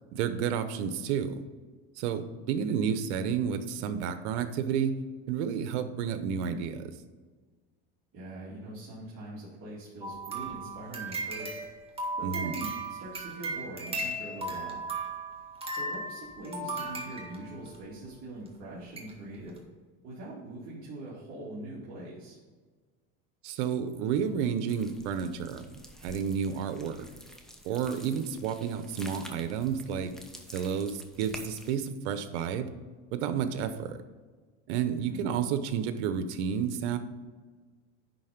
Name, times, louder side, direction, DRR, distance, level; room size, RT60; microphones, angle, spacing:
voice 1, 0.1-1.4 2.0-4.9 5.3-6.9 12.2-12.6 23.4-25.7 26.0-27.1 27.6-30.1 30.5-32.7 33.1-34.0 34.7-37.0, right 7 dB, 90° right, 10 dB, 0.9 m, -31 dB
voice 2, 8.1-11.6 12.2-14.8 15.8-19.6 20.0-22.4 35.0-35.2, right 1 dB, 40° right, -9 dB, 2.6 m, -42 dB
sound 1, 10.0-17.8 18.5-18.6 19.0-19.1 19.5-19.6, right 2 dB, 15° right, 1.8 m, -36 dB
sound 2, 24.7-31.8, equal, ahead, 0.9 m, -49 dB
10.5 x 4.1 x 5.1 m, 1.4 s
supercardioid pair, 125°, 34 cm